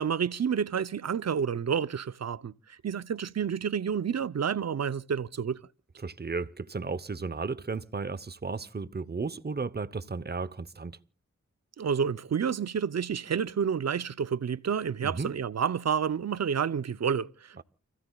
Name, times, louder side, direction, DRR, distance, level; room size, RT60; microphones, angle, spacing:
voice 1, 0.0-5.6 11.8-17.6, right 7 dB, 60° right, 0.7 m, -29 dB
voice 2, 6.0-11.0 15.0-15.3 17.6-17.7, right 4 dB, 35° right, 0.9 m, -34 dB
29.5 x 15.5 x 2.4 m
cardioid pair, 55°, 29 cm